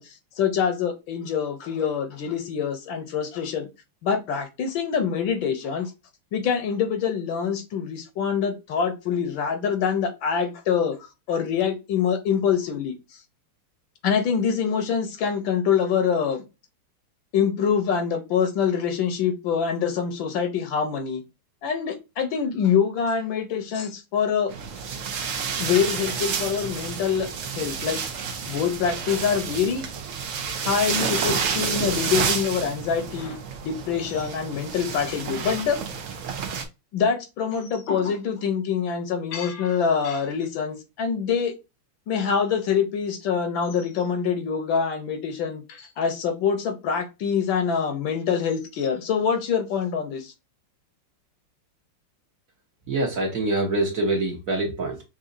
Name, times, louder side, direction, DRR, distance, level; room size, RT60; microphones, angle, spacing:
voice 1, 0.0-3.7 4.0-5.9 6.3-11.0 11.3-12.9 14.0-16.4 17.3-21.2 21.6-24.5 25.6-28.0 28.5-29.8 30.5-35.8 36.9-41.5 42.1-50.3, left 7 dB, 70° left, 1.4 m, -25 dB
sound 1, 24.5-36.6, right 6 dB, 75° right, 0.7 m, -30 dB
voice 2, 52.9-55.0, right 2 dB, 50° right, 1.1 m, -25 dB
5.8 x 2.6 x 2.5 m
omnidirectional pair, 2.3 m